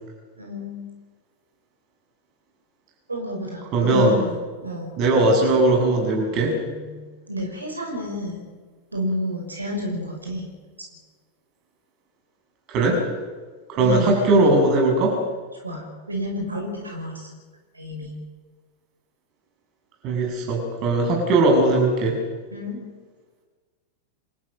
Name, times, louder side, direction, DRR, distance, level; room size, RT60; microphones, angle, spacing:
voice 1, 0.4-0.8 3.1-4.9 6.6-8.5 8.9-10.5 13.8-14.4 15.5-17.3 17.7-18.1 22.5-22.8, equal, 80° right, 1 dB, 5.9 m, -30 dB
voice 2, 3.7-4.2 5.0-6.5 12.7-13.0 13.7-15.2 20.0-22.1, right 2 dB, 40° right, 1 dB, 7.8 m, -19 dB
27.0 x 14.5 x 8.9 m, 1.4 s
figure-of-eight pair, 90°, 0 cm